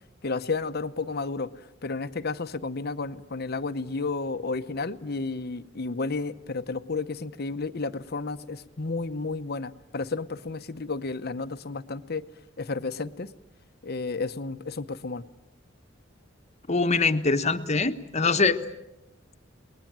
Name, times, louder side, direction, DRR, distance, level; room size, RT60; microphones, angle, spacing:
voice 1, 0.2-1.5 1.8-12.3 12.6-13.3 13.8-15.2, left 3 dB, 55° left, 12 dB, 0.9 m, -32 dB
voice 2, 16.7-18.6, left 4 dB, 35° left, 9 dB, 1.2 m, -23 dB
29.5 x 20.5 x 7.5 m, 0.91 s
head